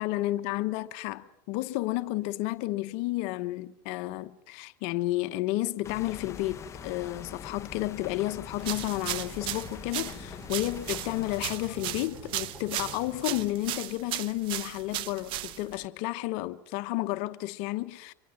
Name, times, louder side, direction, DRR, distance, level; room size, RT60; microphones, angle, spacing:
voice 1, 0.0-18.1, left 17 dB, 65° left, 1.0 m, -32 dB
sound 1, 5.8-11.5, left 8 dB, 25° left, 0.8 m, -44 dB
sound 2, 6.5-13.5, right 3 dB, 20° right, 3.7 m, -49 dB
sound 3, 8.6-15.8, right 14 dB, 55° right, 0.9 m, -36 dB
25.0 x 22.0 x 7.7 m
supercardioid pair, 115°, 11 cm